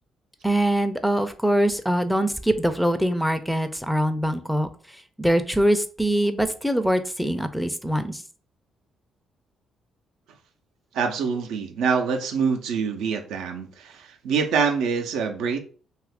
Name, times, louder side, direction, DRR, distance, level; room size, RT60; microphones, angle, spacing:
voice 1, 0.4-4.7 5.2-8.2, right 1 dB, ahead, 0.4 m, -23 dB
voice 2, 10.9-15.6, right 5 dB, 90° right, 0.5 m, -25 dB
2.7 x 2.4 x 3.4 m
cardioid pair, 90°, 0 cm